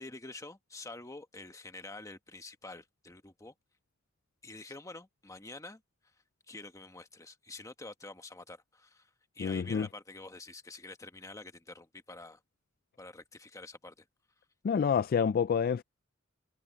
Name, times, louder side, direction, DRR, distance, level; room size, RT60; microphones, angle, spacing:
voice 1, 0.0-3.5 4.4-5.8 6.5-12.4 13.0-14.1, left 2 dB, 15° left, 1.3 m, -47 dB
voice 2, 9.4-9.9 14.6-15.8, left 6 dB, 45° left, 0.3 m, -28 dB
head